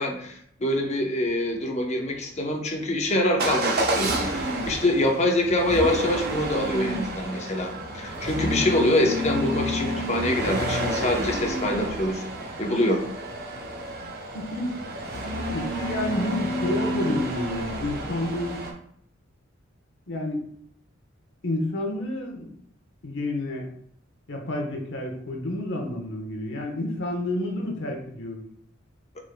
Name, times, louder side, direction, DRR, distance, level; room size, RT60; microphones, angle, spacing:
voice 1, 0.0-12.2 12.6-13.0, left 1 dB, 35° left, 2 dB, 0.8 m, -25 dB
Motor vehicle (road) / Engine starting / Accelerating revving vroom, 3.4-18.7, right 1 dB, 50° right, 0.9 m, -30 dB
voice 2, 14.3-14.7 15.5-18.6 20.1-20.4 21.4-22.5 23.0-23.7 24.3-28.4, left 1 dB, 65° left, 1 dB, 1.1 m, -29 dB
6.1 x 3.9 x 2.2 m, 0.66 s
head